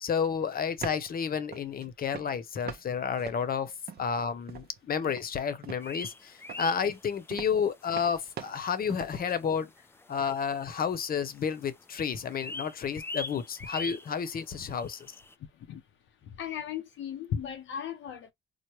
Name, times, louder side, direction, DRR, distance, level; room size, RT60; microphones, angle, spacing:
voice 1, 0.0-3.7 4.0-9.7 10.1-15.1, left 7 dB, 45° left, 0.8 m, -31 dB
sound 1, 0.6-1.2 1.5-1.8 2.1-2.9 3.1-4.2 4.5-4.8 5.1-6.1 6.5-9.3, right 8 dB, 50° right, 0.8 m, -42 dB
sound 2, 5.8-7.5 7.9-8.0 8.5-8.6 9.3-9.4 9.6-9.7 9.9-11.1 11.3-11.7 12.0-15.3, left 2 dB, 10° left, 0.4 m, -42 dB
voice 2, 16.4-18.3, left 8 dB, 75° left, 0.6 m, -36 dB
4.6 x 2.1 x 3.0 m
cardioid pair, 90°, 20 cm